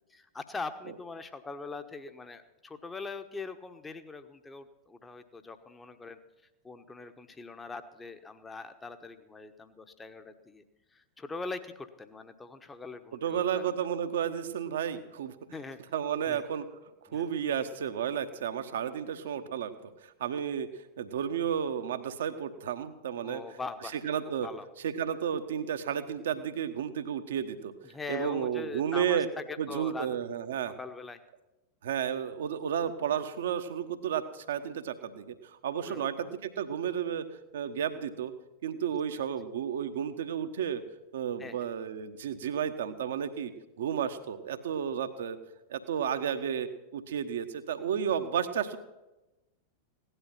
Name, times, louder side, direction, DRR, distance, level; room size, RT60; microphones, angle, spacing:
voice 1, 0.1-6.2 6.6-10.6 10.9-13.6 15.5-15.8 16.3-16.4 17.1-17.3 23.2-24.0 24.4-24.6 27.8-30.1 30.8-31.2 35.8-36.3 41.4-41.7, left 4 dB, 15° left, 9 dB, 1.1 m, -42 dB
voice 2, 13.1-15.3 15.9-16.7 17.1-19.7 20.2-20.7 21.0-23.4 23.9-24.5 24.8-27.7 28.1-29.3 29.6-30.7 31.8-37.3 37.5-38.3 38.6-40.8 41.1-43.5 43.8-45.4 45.7-48.8, right 8 dB, 60° right, 9 dB, 1.1 m, -32 dB
17.0 x 11.5 x 5.8 m, 1.0 s
figure-of-eight pair, 90°, 0 cm